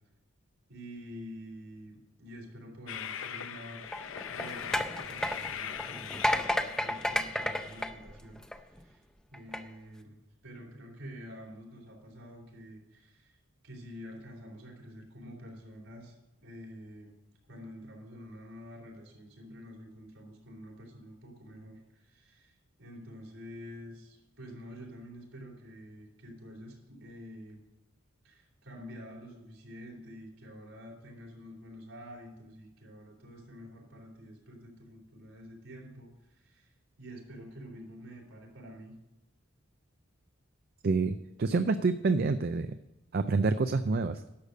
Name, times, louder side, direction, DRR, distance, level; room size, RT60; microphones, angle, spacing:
voice 1, 0.7-3.8 4.3-9.0 9.3-13.4 13.6-17.1 17.5-27.6 28.2-38.9, equal, 80° right, -1 dB, 3.6 m, -48 dB
Train, 2.9-7.9, left 8 dB, 70° left, 0.6 m, -41 dB
sound 1, 3.8-8.8 9.3-9.6, left 1 dB, 5° left, 0.5 m, -32 dB
voice 2, 40.8-42.7 43.1-44.2, right 4 dB, 50° right, 10 dB, 0.4 m, -27 dB
11.5 x 6.7 x 6.5 m, 0.98 s
head